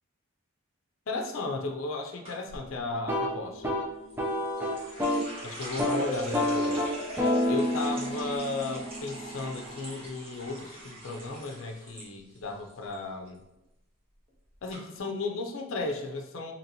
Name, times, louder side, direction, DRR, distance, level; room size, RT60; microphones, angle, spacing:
voice 1, 1.1-3.7 5.4-6.8 7.5-13.4 14.6-16.5, left 3 dB, 70° left, 3 dB, 0.5 m, -35 dB
sound 1, 2.2-2.6 4.1-12.1 12.3-12.9 13.3-13.6 14.3-14.4 14.7-14.8, equal, 25° right, 1.2 m, -41 dB
sound 2, 3.0-5.3 5.6-6.0 6.3-10.2, left 1 dB, 10° right, 0.4 m, -30 dB
3.0 x 2.9 x 4.0 m, 0.88 s
head